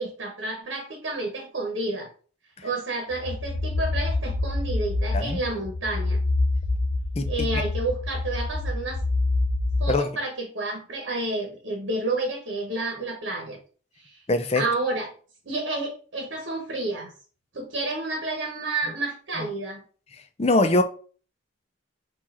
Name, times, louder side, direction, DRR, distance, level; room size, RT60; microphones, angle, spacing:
voice 1, 0.0-2.1 2.6-6.2 7.2-9.0 9.8-13.6 14.0-14.2 14.5-15.1 15.4-17.1 17.5-19.8, right 2 dB, 80° right, 1 dB, 1.2 m, -30 dB
sound 1, 3.1-9.9, left 2 dB, 80° left, 0.7 m, -26 dB
voice 2, 7.2-7.6 9.9-10.1 14.3-14.6 19.4-19.5 20.4-20.8, left 2 dB, 35° left, 8 dB, 0.5 m, -23 dB
4.7 x 2.5 x 4.3 m, 0.40 s
head